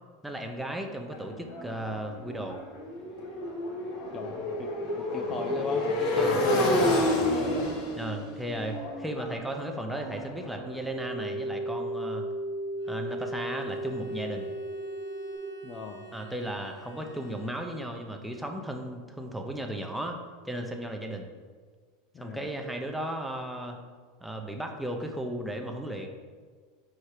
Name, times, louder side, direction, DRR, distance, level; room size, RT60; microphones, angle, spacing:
voice 1, 0.2-2.6 6.2-6.4 8.0-12.3 12.9-14.5 16.1-20.2 20.4-21.3 22.2-23.8 24.2-26.1, right 1 dB, 5° right, 2 dB, 0.8 m, -35 dB
Motorcycle, 1.1-11.0, left 1 dB, 60° left, 1.5 m, -30 dB
voice 2, 4.1-7.6 15.6-16.0 22.1-22.5, left 4 dB, 35° left, 4 dB, 0.5 m, -38 dB
sound 1, 10.4-15.4, right 1 dB, 65° right, 1.6 m, -35 dB
Bowed string instrument, 12.8-18.0, right 6 dB, 90° left, 1.6 m, -50 dB
4.6 x 4.5 x 4.9 m, 1.6 s
hypercardioid pair, 105°, 0 cm